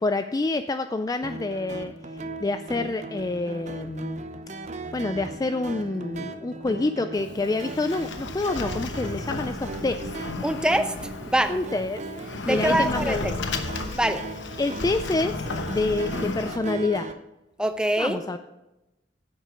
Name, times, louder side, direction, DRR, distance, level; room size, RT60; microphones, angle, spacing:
voice 1, 0.0-4.2 4.9-10.1 11.5-12.0 12.5-13.4 14.6-15.4 15.7-17.1 18.0-18.4, left 2 dB, 20° left, 9 dB, 0.3 m, -27 dB
sound 1, 1.2-17.1, right 2 dB, 40° right, 0.8 m, -38 dB
Sliding door, 7.1-16.6, left 3 dB, 70° left, 1.0 m, -34 dB
voice 2, 10.4-10.9 11.3-11.5 12.4-13.2 13.9-14.3 17.6-18.2, right 1 dB, 5° right, 8 dB, 0.7 m, -23 dB
10.0 x 8.0 x 5.0 m, 0.95 s
head